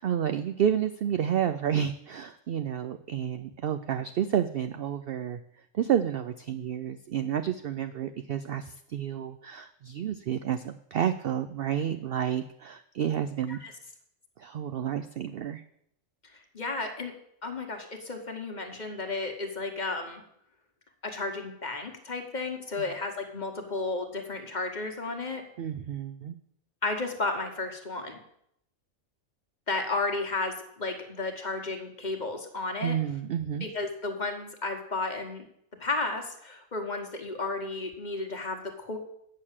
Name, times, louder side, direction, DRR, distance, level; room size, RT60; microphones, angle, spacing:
voice 1, 0.0-5.4 5.7-13.6 14.4-15.6 25.6-26.4 32.8-33.7, right 9 dB, 65° right, 9 dB, 0.6 m, -30 dB
voice 2, 16.3-17.1 17.4-20.2 21.0-25.4 26.8-28.2 29.7-33.0 33.6-35.4 35.8-39.0, left 3 dB, 35° left, 4 dB, 1.3 m, -33 dB
8.6 x 6.4 x 7.3 m, 0.73 s
omnidirectional pair, 1.4 m